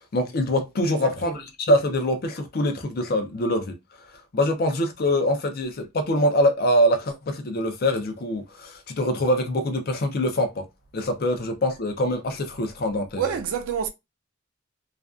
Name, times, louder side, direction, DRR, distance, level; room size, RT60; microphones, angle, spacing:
voice 1, 0.1-3.7 4.3-10.6 10.9-13.4, left 1 dB, 45° left, 0.4 m, -24 dB
voice 2, 0.8-1.4 13.2-13.9, right 8 dB, 75° right, 0.3 m, -28 dB
2.4 x 2.2 x 2.3 m
head